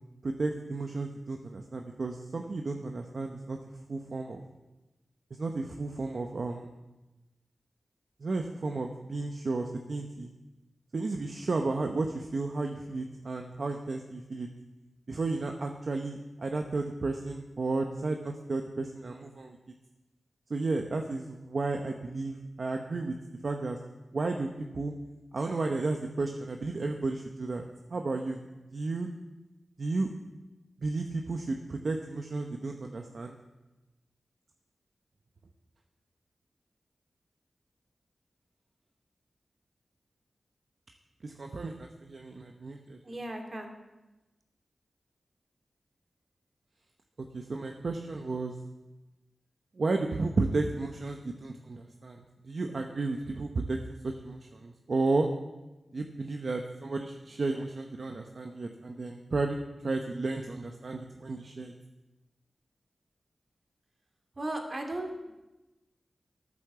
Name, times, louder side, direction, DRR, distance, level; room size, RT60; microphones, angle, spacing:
voice 1, 0.2-3.6 3.9-4.4 5.4-6.7 8.2-10.3 10.9-14.5 15.1-19.6 20.5-23.1 23.4-23.8 24.1-24.5 24.7-24.9 25.3-27.6 27.9-28.4 28.7-29.1 29.8-30.1 30.8-33.4 41.2-43.0 47.3-48.5 49.8-53.8 54.0-55.3 55.9-61.7, right 3 dB, 60° right, 3 dB, 0.9 m, -33 dB
voice 2, 43.0-43.7 64.4-65.1, right 1 dB, 45° right, 2 dB, 2.5 m, -36 dB
13.5 x 8.5 x 6.8 m, 1.1 s
wide cardioid pair, 70°, 0 cm